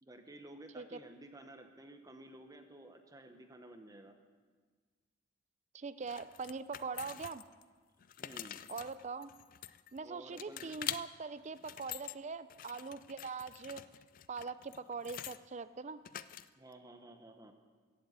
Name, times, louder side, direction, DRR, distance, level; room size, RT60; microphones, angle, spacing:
voice 1, 0.0-4.2 8.2-8.6 10.0-10.7 16.6-17.5, right 1 dB, 15° right, 6 dB, 0.9 m, -53 dB
voice 2, 5.7-7.4 8.7-9.3 9.9-13.8 14.3-16.0, right 4 dB, 35° right, 14 dB, 0.4 m, -42 dB
sound 1, 6.1-7.6 8.0-10.0 10.4-11.0 11.5-12.2 12.5-15.4 16.1-16.7, left 11 dB, 40° left, 0.3 m, -45 dB
15.5 x 7.9 x 8.0 m, 1.5 s
head